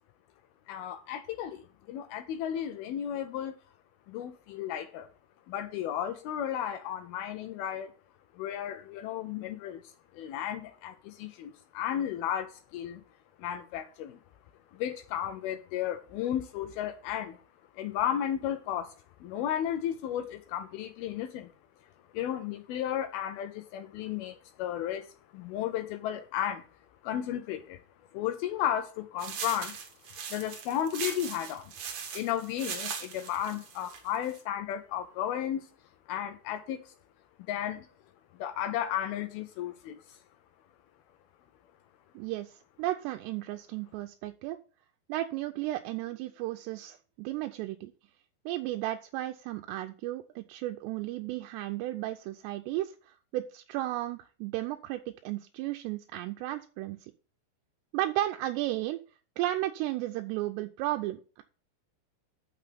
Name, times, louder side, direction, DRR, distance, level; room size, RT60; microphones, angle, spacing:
voice 1, 0.7-3.6 4.1-5.1 5.5-7.9 8.3-13.0 13.4-14.2 14.7-17.4 17.7-18.9 19.2-21.5 22.1-25.1 25.3-26.6 27.0-27.8 28.1-29.8 30.3-31.7 32.1-35.7 36.1-36.9 37.5-37.9 38.4-40.2, left 10 dB, 80° left, 2.2 m, -34 dB
sound 1, 29.2-34.4, right 6 dB, 60° right, 1.9 m, -39 dB
voice 2, 42.2-44.6 45.1-47.9 48.5-57.1 57.9-59.0 59.4-61.4, right 15 dB, 85° right, 2.7 m, -34 dB
6.8 x 6.2 x 6.8 m
omnidirectional pair, 5.0 m